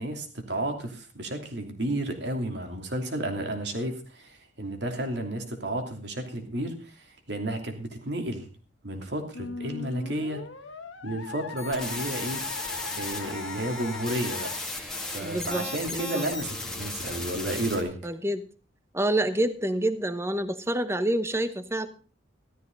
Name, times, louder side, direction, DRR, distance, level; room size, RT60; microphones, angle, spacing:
voice 1, 0.0-8.5 8.8-10.4 11.0-12.4 12.9-14.5 15.1-18.0, right 1 dB, 60° right, 4 dB, 2.9 m, -32 dB
Musical instrument, 9.3-14.6, left 5 dB, 85° left, 1.6 m, -39 dB
sound 1, 11.6-17.8, left 2 dB, 5° left, 2.2 m, -35 dB
voice 2, 15.2-15.7 15.9-16.2 18.0-18.4 18.9-21.9, right 1 dB, 15° right, 11 dB, 0.9 m, -27 dB
14.0 x 13.0 x 3.9 m, 0.37 s
head